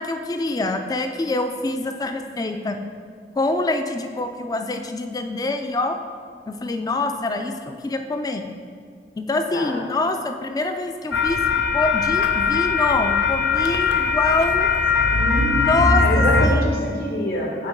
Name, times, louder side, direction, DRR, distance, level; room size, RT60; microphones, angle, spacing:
voice 1, 0.0-2.8 3.4-6.0 6.5-8.5 9.2-11.4 11.7-14.7 15.5-17.0, left 2 dB, 20° left, 6 dB, 0.3 m, -25 dB
voice 2, 9.5-9.8 15.1-17.7, equal, 60° left, -1 dB, 1.1 m, -26 dB
sound 1, 11.1-16.5, left 5 dB, 85° left, 0.5 m, -20 dB
7.4 x 3.0 x 5.2 m, 2.1 s
head